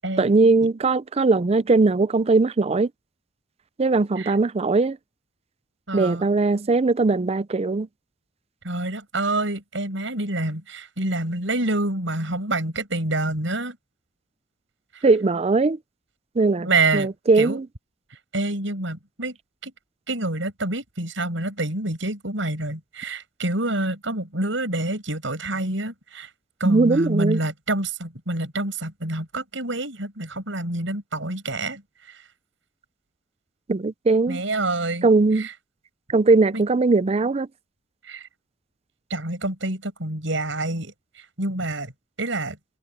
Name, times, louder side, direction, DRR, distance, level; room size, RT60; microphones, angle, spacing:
voice 1, 0.2-2.9 3.8-5.0 5.9-7.9 15.0-15.8 16.4-16.7 16.9-17.6 26.6-27.4 33.7-34.4 35.0-35.5 36.1-37.5, right 3 dB, 35° right, 0.5 m, -19 dB
voice 2, 5.9-6.3 8.6-13.8 14.9-15.1 16.6-17.1 17.3-17.6 18.3-19.4 19.6-19.7 20.1-26.3 26.6-32.3 34.3-35.5 36.5-36.6 38.0-38.3 39.1-41.9 42.2-42.6, right 2 dB, 75° right, 7.8 m, -27 dB
head